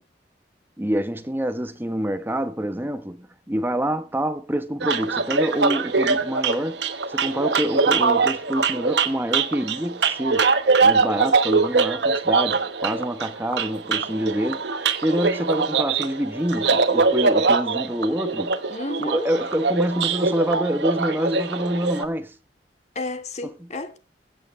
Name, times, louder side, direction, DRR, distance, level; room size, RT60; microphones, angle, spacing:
voice 1, 0.8-18.6 19.0-22.4, equal, 10° right, 1.1 m, -26 dB
sound 1, 4.8-22.0, right 4 dB, 75° right, 1.2 m, -22 dB
voice 2, 18.7-19.3 22.9-24.0, left 2 dB, 40° left, 1.5 m, -32 dB
23.0 x 7.8 x 3.3 m
head